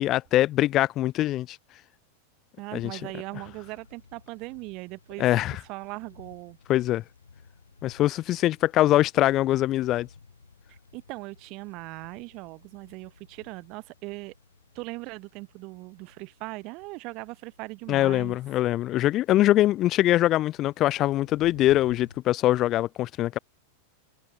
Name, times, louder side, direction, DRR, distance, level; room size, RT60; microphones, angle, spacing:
voice 1, 0.0-1.6 2.7-3.0 5.2-5.6 6.7-7.0 7.8-10.1 17.9-23.4, left 14 dB, 35° left, 0.7 m, -23 dB
voice 2, 2.6-6.6 10.7-14.3 14.7-18.4, right 24 dB, 40° right, 0.7 m, -39 dB
sound 1, 2.8-22.2, left 4 dB, 75° left, 6.3 m, -54 dB
figure-of-eight pair, 90°, 0 cm